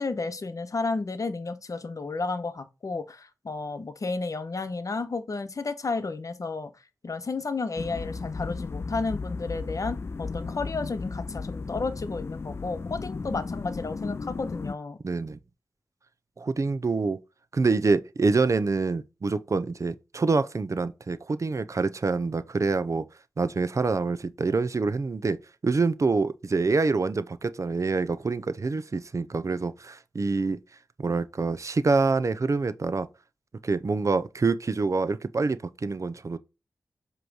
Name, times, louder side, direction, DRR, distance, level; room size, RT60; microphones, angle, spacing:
voice 1, 0.0-6.7 7.0-15.0, left 3 dB, 55° left, 0.9 m, -32 dB
sound 1, 7.8-14.8, left 4 dB, 40° left, 0.3 m, -35 dB
voice 2, 15.0-15.4 16.4-17.2 17.5-23.1 23.4-25.4 25.6-30.6 31.0-33.1 33.6-36.4, right 4 dB, 50° right, 0.6 m, -26 dB
7.7 x 3.1 x 4.7 m
cardioid pair, 45°, 7 cm